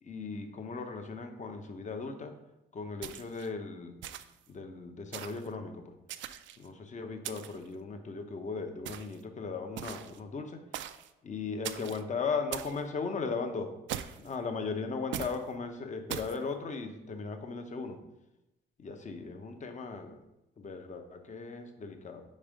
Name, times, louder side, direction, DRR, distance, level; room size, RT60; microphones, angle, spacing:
voice 1, 0.0-2.3 2.7-3.9 4.5-5.9 6.6-10.6 11.2-13.7 14.2-18.0 18.8-20.2 20.6-22.2, left 4 dB, 40° left, 6 dB, 0.9 m, -37 dB
sound 1, 3.0-3.5 4.0-4.5 5.1-5.5 6.1-6.7 7.2-7.7 8.9-9.2 9.8-10.2 10.7-11.1 11.6-12.0 12.5-12.8 13.9-14.3 15.1-15.4 16.1-16.4, right 11 dB, 75° right, 0.4 m, -40 dB
5.4 x 4.4 x 5.1 m, 0.91 s
cardioid pair, 90°, 20 cm